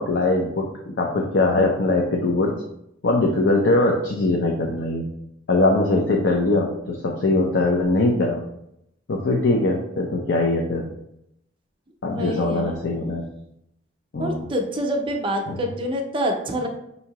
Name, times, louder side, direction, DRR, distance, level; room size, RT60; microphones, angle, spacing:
voice 1, 0.0-2.5 3.0-5.1 5.5-8.4 9.1-10.9 12.0-13.2 14.1-14.4 15.5-15.6, left 2 dB, 65° left, 0 dB, 0.5 m, -21 dB
voice 2, 12.1-13.0 14.2-16.7, equal, 25° right, 2 dB, 0.6 m, -27 dB
5.5 x 2.7 x 2.9 m, 0.79 s
head